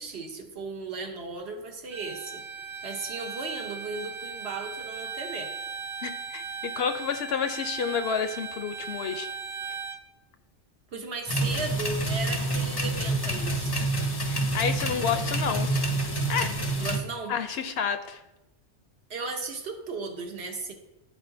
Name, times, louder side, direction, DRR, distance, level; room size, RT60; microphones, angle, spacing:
voice 1, 0.0-2.4 2.8-5.5 10.9-13.8 16.8-17.3 19.1-20.7, right 3 dB, 65° right, 4 dB, 1.1 m, -36 dB
Bowed string instrument, 1.9-10.0, right 6 dB, 35° right, 0.5 m, -38 dB
voice 2, 6.0-9.3 14.3-15.9 16.3-16.5 17.3-18.2, left 7 dB, 65° left, 8 dB, 0.7 m, -30 dB
sound 1, 11.3-17.0, right 1 dB, 30° left, 0.5 m, -27 dB
12.0 x 4.7 x 2.6 m, 0.98 s
omnidirectional pair, 1.2 m